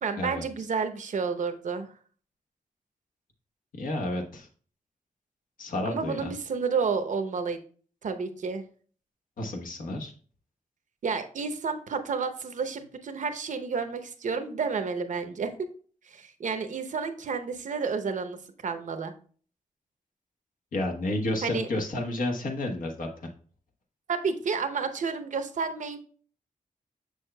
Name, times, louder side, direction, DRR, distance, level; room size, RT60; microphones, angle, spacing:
voice 1, 0.0-1.9 5.9-7.6 8.0-8.6 11.0-15.7 16.1-19.1 21.4-21.7 24.1-26.0, right 5 dB, 65° right, 8 dB, 0.7 m, -30 dB
voice 2, 3.7-4.5 5.6-6.3 9.4-10.1 20.7-23.1, left 1 dB, 85° left, 2 dB, 1.1 m, -31 dB
6.8 x 6.3 x 2.2 m, 0.43 s
wide cardioid pair, 95°, 14 cm